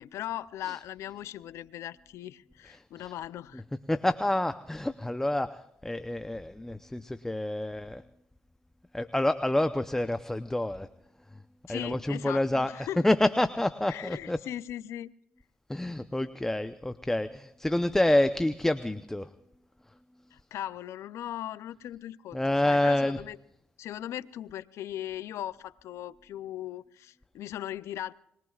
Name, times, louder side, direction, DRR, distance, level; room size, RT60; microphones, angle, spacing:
voice 1, 0.0-3.6 11.7-13.1 13.9-15.1 20.3-23.4 23.8-28.1, left 12 dB, 80° left, 0.5 m, -39 dB
voice 2, 3.9-8.0 8.9-10.9 11.7-12.7 13.0-14.4 15.7-19.3 22.3-23.2, left 1 dB, 10° left, 0.7 m, -28 dB
25.0 x 21.5 x 2.4 m
supercardioid pair, 70°, 5 cm